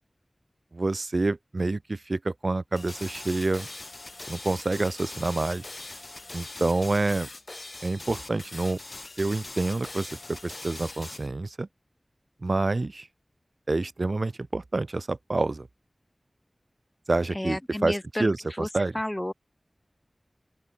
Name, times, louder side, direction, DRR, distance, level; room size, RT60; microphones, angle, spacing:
voice 1, 0.7-3.7 4.3-5.7 6.3-7.3 7.8-8.8 9.2-11.7 12.4-13.1 13.7-15.7 17.1-18.9, right 2 dB, 60° right, 0.5 m, -28 dB
sound 1, 2.7-11.3, left 2 dB, 50° left, 7.4 m, -41 dB
voice 2, 17.3-18.3 18.6-18.7 18.9-19.3, left 1 dB, 20° left, 1.6 m, -31 dB
open air
wide cardioid pair, 55°, 0 cm